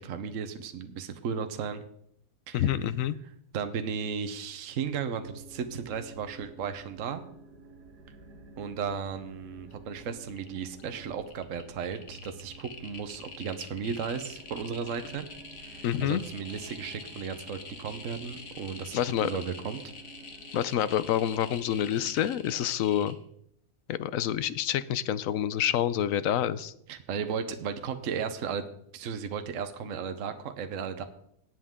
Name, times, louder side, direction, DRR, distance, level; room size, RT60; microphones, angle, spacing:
voice 1, 0.0-1.8 2.5-2.7 3.5-7.2 8.6-15.3 15.6-19.8 26.9-28.6 28.9-31.0, right 6 dB, 60° right, 8 dB, 1.2 m, -35 dB
voice 2, 2.5-3.2 15.8-16.2 18.9-19.3 20.5-23.2 23.9-26.7, left 10 dB, 65° left, 15 dB, 1.0 m, -27 dB
sound 1, 5.2-22.7, right 3 dB, 90° right, 2.1 m, -51 dB
sound 2, 9.7-10.0 10.2-10.8 11.2-23.1, left 4 dB, 50° left, 1.6 m, -46 dB
18.5 x 7.8 x 3.7 m, 0.70 s
omnidirectional pair, 1.6 m